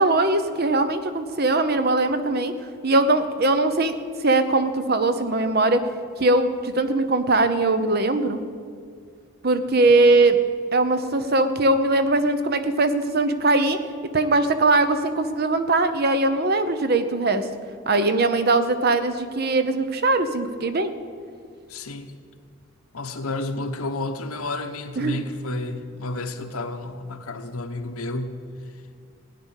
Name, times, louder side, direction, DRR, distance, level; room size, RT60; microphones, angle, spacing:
voice 1, 0.0-2.5 2.8-4.0 4.2-5.8 6.2-8.4 9.4-10.4 10.7-13.8 14.1-17.4 17.9-20.9 25.0-25.3, right 2 dB, 45° right, 10 dB, 0.8 m, -21 dB
voice 2, 21.7-22.1 22.9-28.4, left 2 dB, 85° left, 7 dB, 1.1 m, -31 dB
15.5 x 9.9 x 6.5 m, 2.2 s
head